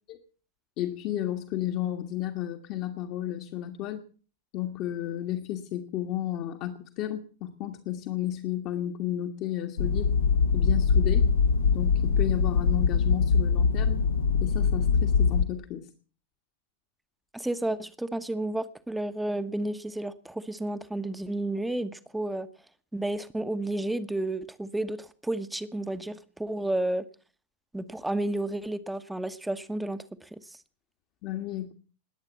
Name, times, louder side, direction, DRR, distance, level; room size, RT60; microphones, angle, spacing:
voice 1, 0.8-4.1 4.5-10.1 10.5-11.3 11.7-14.0 14.4-15.9 31.2-31.7, left 12 dB, 40° left, 5 dB, 1.6 m, -33 dB
sound 1, 9.8-15.4, left 5 dB, 65° left, 1.2 m, -23 dB
voice 2, 17.3-22.5 22.9-27.0 27.7-30.6, right 1 dB, 5° right, 13 dB, 1.1 m, -31 dB
20.5 x 8.8 x 7.3 m, 0.41 s
figure-of-eight pair, 90°, 0 cm